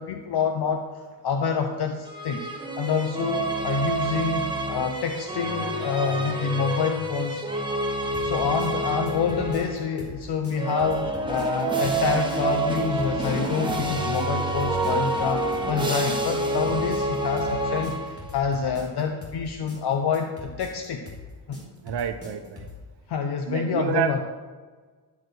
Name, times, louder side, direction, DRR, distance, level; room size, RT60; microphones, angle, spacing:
voice 1, 0.0-2.5 2.8-7.4 8.2-21.0 21.5-21.6 23.1-24.2, left 6 dB, 70° left, 4 dB, 0.8 m, -27 dB
sound 1, 2.1-9.9 10.5-18.4, right 2 dB, 10° right, 1.0 m, -28 dB
sound 2, 8.1-22.8, left 3 dB, 35° left, 2.8 m, -42 dB
voice 2, 21.8-22.7 23.5-24.2, right 8 dB, 75° right, 8 dB, 1.0 m, -28 dB
12.5 x 4.8 x 6.3 m, 1.4 s
wide cardioid pair, 165°, 41 cm